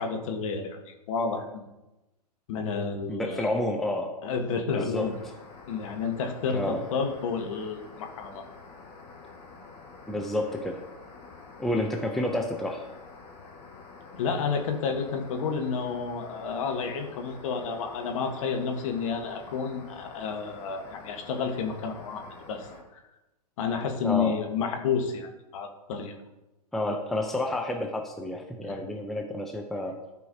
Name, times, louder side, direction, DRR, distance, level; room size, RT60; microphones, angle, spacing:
voice 1, 0.0-1.7 2.5-3.5 4.2-5.2 5.7-8.4 14.1-23.0 23.6-26.1 28.7-28.8, left 5 dB, 55° left, 4 dB, 1.4 m, -31 dB
voice 2, 3.1-4.1 4.7-5.1 6.5-6.8 10.1-10.8 11.6-12.8 24.0-24.4 26.7-30.0, left 1 dB, ahead, 2 dB, 0.6 m, -30 dB
sound 1, 4.9-22.8, left 4 dB, 25° left, 1.8 m, -48 dB
13.5 x 4.6 x 2.8 m, 0.99 s
hypercardioid pair, 115°, 21 cm